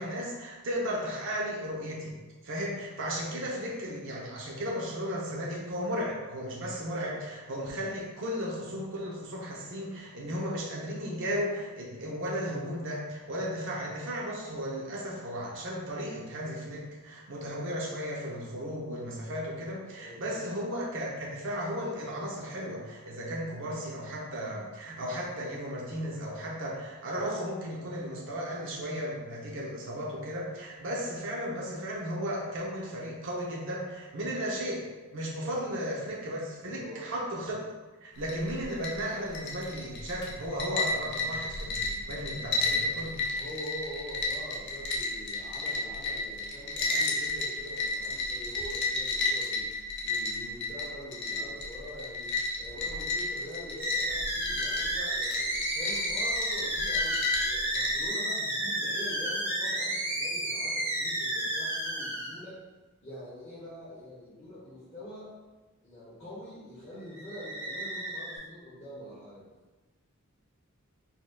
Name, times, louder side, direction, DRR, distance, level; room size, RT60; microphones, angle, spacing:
voice 1, 0.0-2.1 2.4-34.8 35.1-37.6 38.0-43.2, equal, 60° right, -3 dB, 0.6 m, -35 dB
voice 2, 20.0-20.4 35.4-35.6 36.7-37.2 43.3-49.7 50.0-62.6 63.0-65.3 65.8-69.4, equal, 25° left, -11 dB, 1.0 m, -44 dB
sound 1, 38.2-58.1, left 3 dB, 50° left, 0.5 m, -33 dB
sound 2, 53.8-62.4 67.1-68.4, right 1 dB, 10° right, 0.8 m, -32 dB
4.1 x 3.7 x 2.2 m, 1.2 s
head